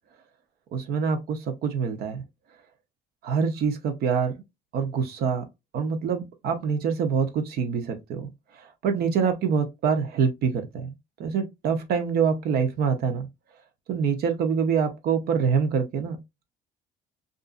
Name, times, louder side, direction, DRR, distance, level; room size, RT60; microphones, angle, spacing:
voice 1, 0.7-2.2 3.2-4.4 4.7-5.4 5.7-8.3 8.8-10.9 11.2-13.3 13.9-16.2, right 6 dB, 70° right, 0.7 m, -25 dB
2.5 x 2.5 x 2.4 m
cardioid pair, 110°, 17 cm